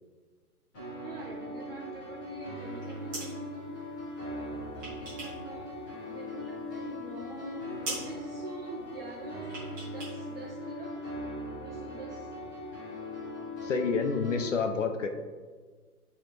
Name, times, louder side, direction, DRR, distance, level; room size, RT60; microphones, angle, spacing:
sound 1, 0.7-14.4, left 1 dB, 15° left, 1.4 m, -40 dB
voice 1, 1.0-3.9 4.2-5.8 6.1-11.0 11.5-12.3, right 1 dB, 40° right, -3 dB, 1.0 m, -44 dB
sound 2, 2.6-3.4 4.4-5.5 5.8-6.7 7.0-7.1 7.4-7.6 7.8-8.1 9.4-10.2 10.4-10.5, right 2 dB, 15° right, 1.3 m, -41 dB
voice 2, 13.6-15.1, left 5 dB, 55° left, 6 dB, 0.8 m, -28 dB
11.5 x 4.2 x 3.4 m, 1.5 s
hypercardioid pair, 170°, 46 cm